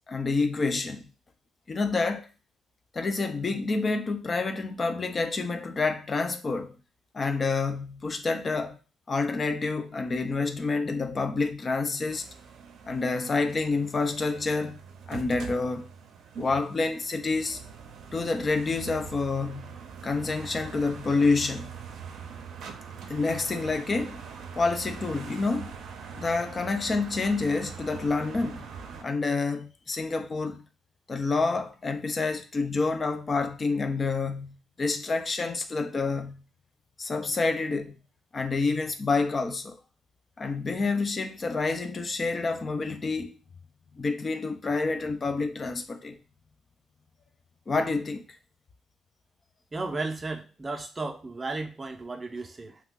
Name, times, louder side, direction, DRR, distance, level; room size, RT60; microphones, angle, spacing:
voice 1, 0.1-1.1 1.7-2.3 2.9-6.8 7.1-8.8 9.1-12.2 12.8-14.8 15.1-15.9 16.4-17.6 18.1-19.7 20.0-21.7 23.1-24.2 24.5-25.7 26.1-28.6 29.0-30.6 31.1-36.4 37.0-38.0 38.3-39.8 40.4-43.4 43.9-46.2 47.7-48.2, left 3 dB, 35° left, 0.5 m, -28 dB
sound 1, 12.1-29.0, right 6 dB, 75° right, 0.5 m, -43 dB
voice 2, 49.7-52.8, right 3 dB, 25° right, 0.6 m, -34 dB
2.9 x 2.3 x 3.6 m
cardioid pair, 90°, 0 cm